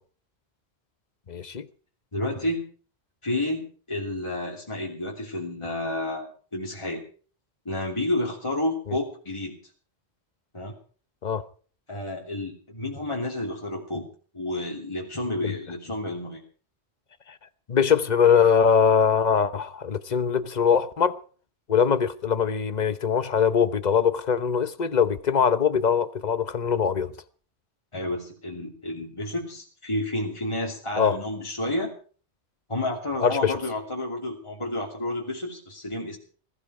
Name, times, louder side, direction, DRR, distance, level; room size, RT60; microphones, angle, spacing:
voice 1, 1.3-1.7 8.9-9.0 11.2-11.4 15.4-15.5 17.7-21.2 21.7-27.1 31.0-31.2 33.2-33.5, left 7 dB, 45° left, 1.0 m, -22 dB
voice 2, 2.1-2.7 3.2-6.3 6.5-7.0 7.6-9.5 10.5-10.8 11.9-14.1 14.3-16.4 27.9-31.9 32.7-36.2, left 1 dB, 25° left, 3.0 m, -30 dB
21.0 x 14.0 x 4.9 m
omnidirectional pair, 1.1 m